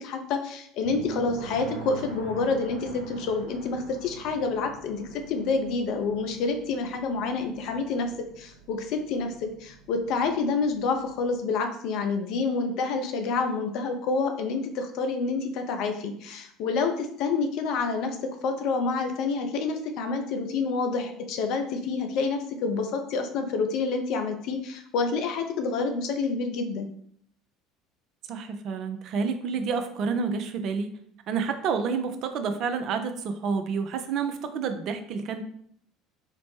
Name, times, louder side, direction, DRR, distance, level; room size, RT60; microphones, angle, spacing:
voice 1, 0.0-8.1 8.4-18.2 18.4-26.9, left 4 dB, 55° left, 5 dB, 0.4 m, -28 dB
sound 1, 0.8-11.4, right 4 dB, 85° right, 0.8 m, -44 dB
voice 2, 28.3-31.0 31.3-35.4, right 5 dB, 50° right, 7 dB, 0.4 m, -29 dB
4.1 x 2.0 x 3.1 m, 0.65 s
figure-of-eight pair, 65°, 0 cm